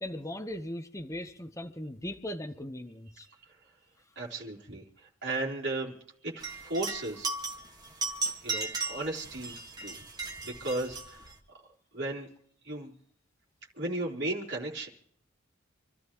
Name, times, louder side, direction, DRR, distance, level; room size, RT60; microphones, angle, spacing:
voice 1, 0.0-3.3, left 1 dB, 15° left, 5 dB, 0.9 m, -38 dB
voice 2, 4.2-7.3 8.4-10.0 10.4-11.3 11.9-12.3 12.6-12.9 13.8-14.9, right 2 dB, 55° right, -4 dB, 3.8 m, -35 dB
sound 1, 6.4-11.3, right 3 dB, 20° right, 1.7 m, -36 dB
28.5 x 13.5 x 3.1 m, 0.69 s
head